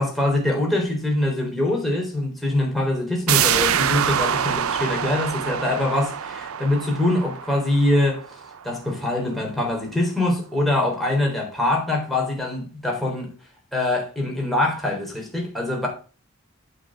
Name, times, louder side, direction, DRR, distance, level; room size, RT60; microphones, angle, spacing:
voice 1, 0.0-8.2 8.6-13.3 13.7-15.9, left 1 dB, ahead, 3.9 m, -23 dB
sound 1, 3.3-8.8 9.1-9.2, right 9 dB, 85° right, 0.7 m, -25 dB
8.9 x 5.3 x 7.5 m
head